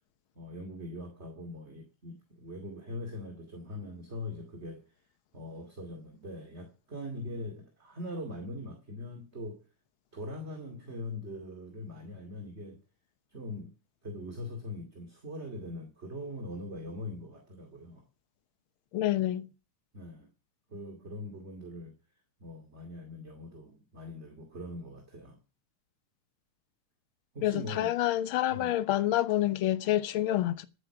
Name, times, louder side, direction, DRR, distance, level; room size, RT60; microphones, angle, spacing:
voice 1, 0.4-4.8 5.3-9.6 10.1-12.8 13.3-13.7 14.0-18.0 19.9-20.3 20.7-22.0 22.4-25.4 27.3-27.9 28.5-28.7, left 1 dB, 25° right, 2.3 m, -41 dB
voice 2, 18.9-19.5 27.4-30.6, left 13 dB, 65° left, 1.4 m, -28 dB
12.5 x 9.9 x 5.9 m
omnidirectional pair, 3.4 m